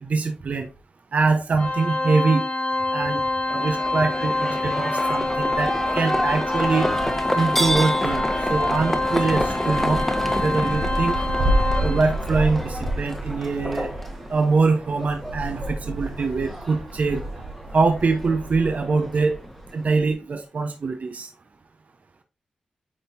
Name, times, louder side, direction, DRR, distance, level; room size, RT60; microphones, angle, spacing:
voice 1, 0.0-0.7 1.1-2.4 2.9-6.9 7.3-10.0 10.4-11.1 11.8-13.9 14.3-17.3 17.7-19.4 19.7-21.3, right 4 dB, 60° right, 1.0 m, -23 dB
Organ, 1.6-12.3, left 2 dB, 55° left, 1.8 m, -26 dB
Livestock farm animals working animals, 3.5-19.9, equal, 5° left, 1.3 m, -30 dB
Wind, 5.2-20.1, right 1 dB, 80° right, 1.3 m, -31 dB
9.0 x 4.4 x 2.8 m
supercardioid pair, 40°, 3 cm